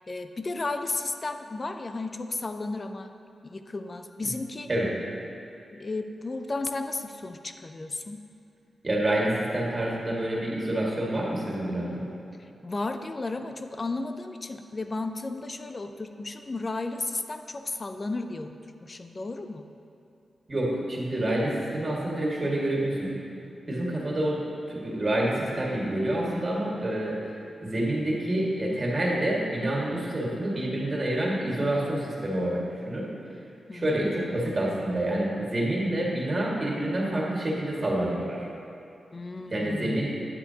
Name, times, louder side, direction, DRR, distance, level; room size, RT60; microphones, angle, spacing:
voice 1, 0.1-3.1 3.4-4.7 5.7-8.3 12.4-18.5 18.8-19.6 33.7-34.1 39.1-40.2, left 2 dB, 35° left, 7 dB, 0.5 m, -34 dB
voice 2, 8.8-12.1 20.5-23.2 23.7-27.3 27.6-33.1 33.7-38.5 39.5-40.1, right 1 dB, 35° right, -4 dB, 2.0 m, -28 dB
10.5 x 8.0 x 2.9 m, 2.7 s
cardioid pair, 75°, 0 cm